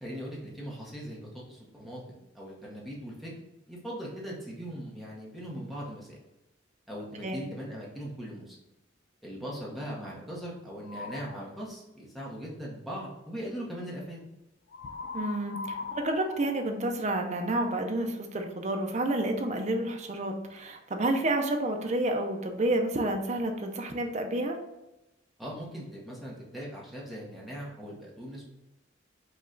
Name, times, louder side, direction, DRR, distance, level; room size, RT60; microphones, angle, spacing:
voice 1, 0.0-3.3 3.7-6.2 6.9-8.6 9.2-14.2 25.4-28.4, equal, ahead, -6 dB, 0.8 m, -40 dB
sound 1, 10.8-11.4 14.7-17.5, left 4 dB, 55° left, 0.3 m, -40 dB
voice 2, 15.1-24.6, right 1 dB, 35° right, 4 dB, 0.5 m, -30 dB
5.2 x 2.3 x 3.7 m, 0.96 s
head